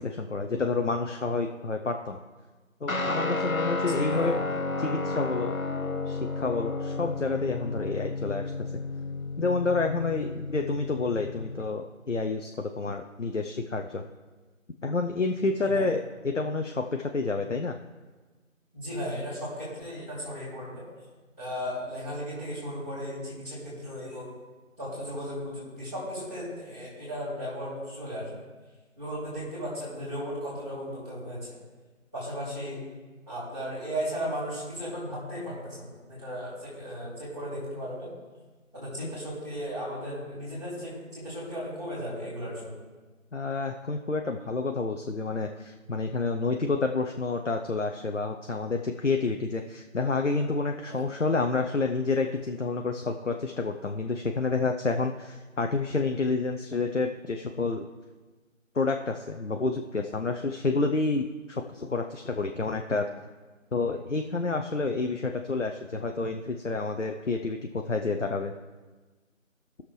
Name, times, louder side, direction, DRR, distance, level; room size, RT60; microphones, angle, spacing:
voice 1, 0.0-2.2 2.8-4.4 4.8-5.6 6.1-8.7 9.4-14.0 14.8-17.8 43.3-57.9 58.7-63.1 63.7-68.5, left 3 dB, 65° left, 4 dB, 0.7 m, -29 dB
Guitar, 2.9-11.7, left 3 dB, 90° left, 1.1 m, -32 dB
voice 2, 3.9-4.3 15.6-15.9 18.7-20.8 21.4-24.3 24.8-28.3 29.0-31.4 32.1-32.8 33.3-38.1 38.7-42.8 50.9-51.0, equal, ahead, -17 dB, 2.1 m, -36 dB
19.5 x 6.6 x 3.2 m, 1.3 s
figure-of-eight pair, 165°, 40 cm